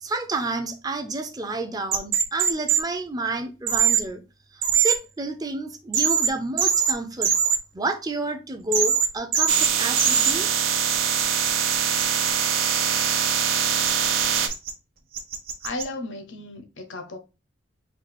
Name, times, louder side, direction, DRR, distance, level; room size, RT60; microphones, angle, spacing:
voice 1, 0.0-4.2 4.5-7.3 7.7-10.5, right 2 dB, 20° right, 0.5 m, -30 dB
sound 1, 1.9-2.8 3.7-4.0 4.6-5.0 5.9-6.3 6.6-6.9 7.2-7.6 8.7-9.1 9.3-9.7 10.0-10.3 10.9-12.3 13.9-14.7 15.1-15.8, right 7 dB, 45° right, 0.9 m, -21 dB
sound 2, 9.5-14.5, right 8 dB, 85° right, 0.7 m, -23 dB
voice 2, 15.6-17.2, left 2 dB, 70° left, 0.8 m, -34 dB
4.4 x 2.4 x 4.1 m
head